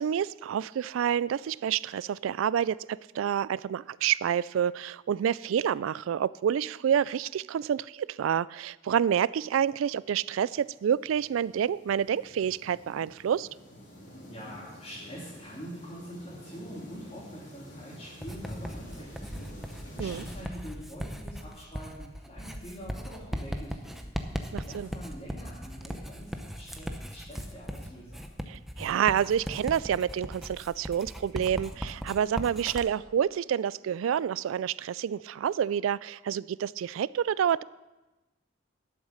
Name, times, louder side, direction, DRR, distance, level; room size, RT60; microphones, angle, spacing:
voice 1, 0.0-13.5 20.0-20.2 24.5-24.9 28.5-37.6, right 8 dB, 85° right, 20 dB, 0.3 m, -28 dB
sound 1, 9.5-20.4, equal, 65° left, 3.2 m, -49 dB
voice 2, 14.3-19.3 19.8-24.1 24.5-28.3, equal, 30° left, -8 dB, 2.9 m, -44 dB
Writing, 18.2-32.9, equal, ahead, 0.7 m, -38 dB
12.0 x 7.2 x 6.5 m, 1.1 s
head